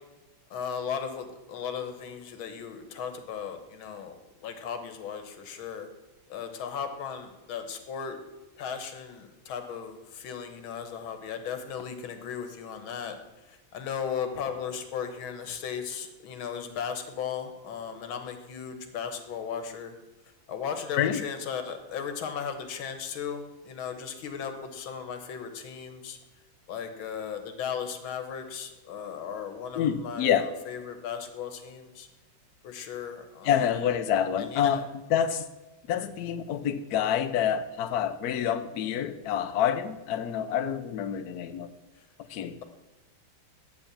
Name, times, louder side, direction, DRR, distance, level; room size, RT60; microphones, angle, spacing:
voice 1, 0.5-4.2 4.4-5.9 6.3-8.2 8.6-13.2 13.5-19.9 20.5-26.2 26.7-32.1 32.6-33.5 34.4-34.8, left 7 dB, 85° left, 1.9 m, -36 dB
voice 2, 20.9-21.2 29.7-30.4 33.4-34.8 35.1-35.5 35.9-41.7 42.3-42.6, left 9 dB, 60° left, 1.1 m, -27 dB
8.3 x 7.7 x 8.7 m
omnidirectional pair, 2.2 m